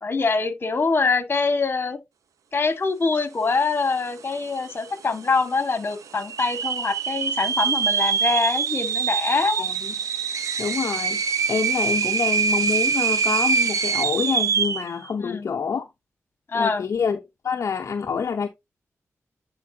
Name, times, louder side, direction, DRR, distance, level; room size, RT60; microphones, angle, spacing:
voice 1, 0.0-2.0 2.5-9.7 15.2-15.5 16.5-16.9, left 4 dB, 40° left, 1.7 m, -24 dB
sound 1, 4.0-4.1 4.3-4.9 5.4-5.5 6.2-14.9, right 6 dB, 90° right, 0.8 m, -24 dB
voice 2, 9.6-9.9 10.6-15.9 16.5-18.5, left 6 dB, 60° left, 0.7 m, -27 dB
10.0 x 4.7 x 2.7 m
wide cardioid pair, 90°, 5 cm